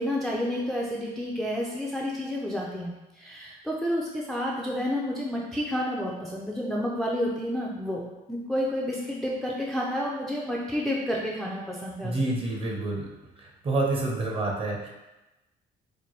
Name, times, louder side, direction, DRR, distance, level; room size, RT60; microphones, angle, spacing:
voice 1, 0.0-12.4, equal, ahead, -3 dB, 0.4 m, -30 dB
voice 2, 12.0-13.1 13.6-14.9, right 2 dB, 35° right, -1 dB, 0.8 m, -27 dB
4.3 x 2.2 x 3.1 m, 1.0 s
cardioid pair, 110°, 17 cm